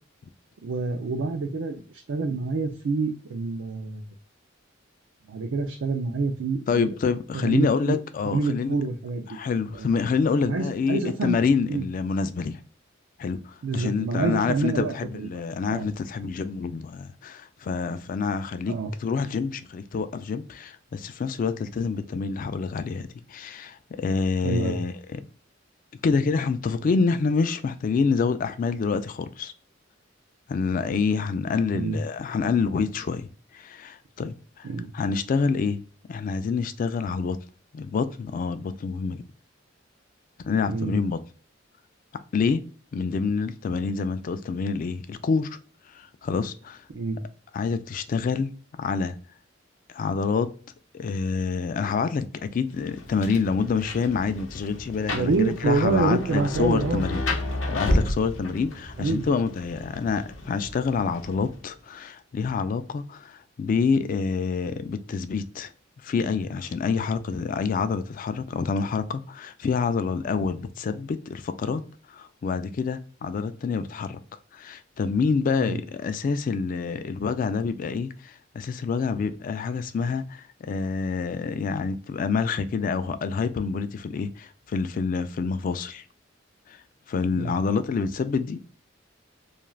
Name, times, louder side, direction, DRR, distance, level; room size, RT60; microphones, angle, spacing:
voice 1, 0.6-4.0 5.3-6.9 7.3-8.0 8.2-9.3 9.8-9.9 10.4-11.4 11.7-11.9 13.6-15.3 15.7-15.9 18.7-18.9 24.4-24.8 31.7-32.0 34.6-34.9 40.7-40.9 46.9-47.2 55.1-57.2 59.0-59.2 75.6-75.8 87.4-87.5, right 3 dB, 85° right, 0.4 m, -27 dB
voice 2, 6.7-8.8 9.3-12.6 13.2-25.2 26.0-29.5 30.5-33.3 33.5-34.7 34.9-35.8 36.1-37.4 37.7-39.2 40.4-41.2 42.3-42.6 42.9-45.6 45.9-46.8 47.5-48.5 48.8-49.1 49.9-50.5 50.9-57.2 57.7-65.7 66.0-71.8 72.1-74.2 74.5-86.0 87.1-88.6, left 5 dB, 45° left, 0.3 m, -27 dB
Rain, 52.7-61.7, left 1 dB, 80° left, 0.7 m, -32 dB
2.4 x 2.3 x 3.0 m
head